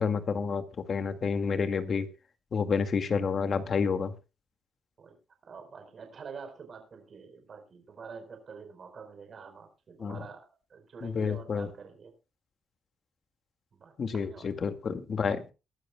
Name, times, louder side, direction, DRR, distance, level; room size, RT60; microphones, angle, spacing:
voice 1, 0.0-2.1 2.5-4.1 10.0-10.2 11.0-11.7 14.0-15.4, left 5 dB, 50° left, 9 dB, 2.0 m, -29 dB
voice 2, 5.5-10.4 10.7-12.1 13.7-14.5, right 5 dB, 50° right, 6 dB, 4.4 m, -46 dB
21.5 x 12.5 x 2.3 m, 0.29 s
cardioid pair, 90°, 0 cm